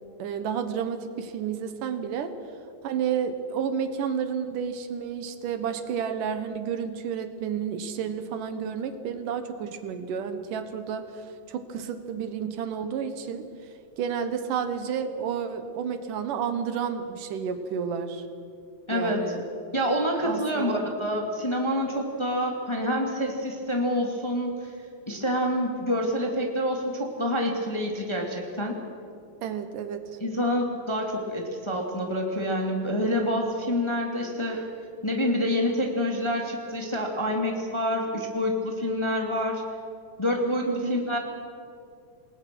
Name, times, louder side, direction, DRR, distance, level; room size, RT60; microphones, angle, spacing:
voice 1, 0.2-2.3 2.8-13.4 14.0-18.2 18.9-19.4 20.2-20.8 29.4-30.2 40.7-41.0, right 7 dB, 75° right, 9 dB, 2.7 m, -31 dB
voice 2, 18.9-19.2 19.7-24.7 25.1-28.7 30.2-34.6 35.0-39.6 40.2-41.2, equal, 10° left, 0 dB, 2.0 m, -27 dB
28.0 x 20.0 x 6.2 m, 2.5 s
omnidirectional pair, 3.9 m